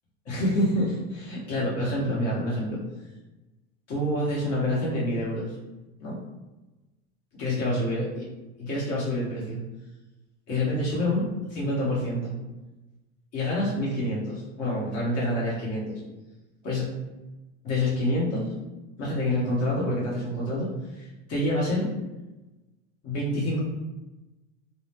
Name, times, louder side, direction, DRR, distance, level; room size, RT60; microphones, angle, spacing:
voice 1, 0.2-2.8 3.9-5.5 6.0-6.2 7.3-8.1 8.6-9.6 10.5-12.3 13.3-16.0 16.6-16.9 17.6-18.5 19.0-21.9 23.0-23.6, left 1 dB, 45° left, -6 dB, 1.0 m, -27 dB
2.5 x 2.0 x 3.4 m, 1.1 s
hypercardioid pair, 90°, 35 cm